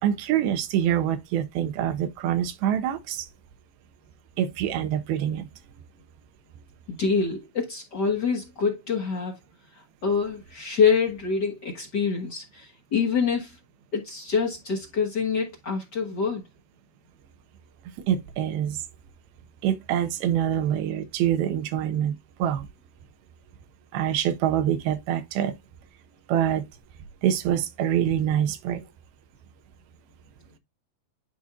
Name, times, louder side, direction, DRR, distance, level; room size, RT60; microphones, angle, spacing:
voice 1, 0.0-3.3 4.4-5.5 18.1-18.8 19.6-22.7 23.9-25.6 26.3-26.7 27.2-28.8, right 10 dB, 85° right, 2.8 m, -25 dB
voice 2, 6.9-9.4 9.7-13.6 13.9-16.4, left 5 dB, 65° left, 1.0 m, -26 dB
11.0 x 4.3 x 2.4 m
omnidirectional pair, 4.3 m